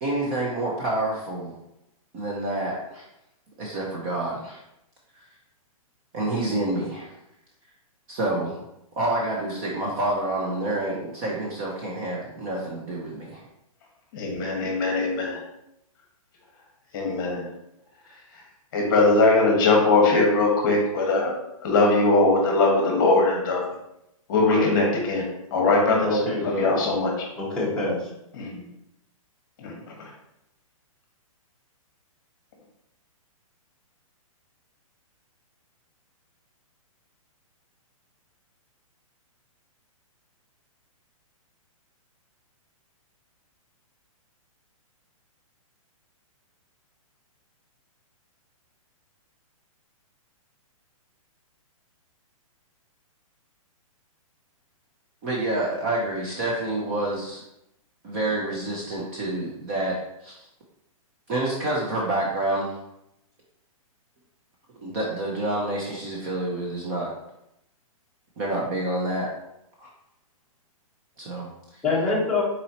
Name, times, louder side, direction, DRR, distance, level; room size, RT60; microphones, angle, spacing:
voice 1, 0.0-1.5 2.1-3.0 3.6-4.6 6.1-7.1 8.1-8.6 9.0-13.4 55.2-57.4 58.0-60.4 61.3-62.7 64.8-67.1 68.4-69.3 69.8-69.9 71.2-71.8, right 2 dB, 20° right, -3 dB, 0.5 m, -28 dB
voice 2, 14.1-15.4 16.9-17.4 18.7-21.3 21.6-23.6 24.3-25.3 25.5-26.1 26.6-27.1 28.4-28.6 29.6-29.7, left 3 dB, 35° left, 0 dB, 1.1 m, -20 dB
voice 3, 26.0-26.7 27.3-28.1 71.8-72.4, left 2 dB, 5° left, -10 dB, 1.1 m, -25 dB
4.1 x 4.0 x 2.8 m, 0.82 s
hypercardioid pair, 170°, 18 cm